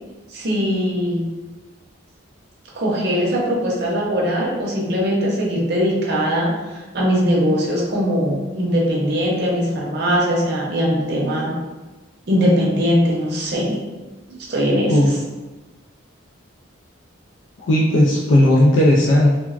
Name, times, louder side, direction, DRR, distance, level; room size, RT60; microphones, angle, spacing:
voice 1, 0.3-1.2 2.7-11.5 12.3-13.8 14.5-15.0, equal, 55° right, -3 dB, 0.7 m, -20 dB
voice 2, 17.6-19.4, left 1 dB, 65° left, -3 dB, 0.4 m, -15 dB
3.3 x 2.1 x 2.4 m, 1.2 s
head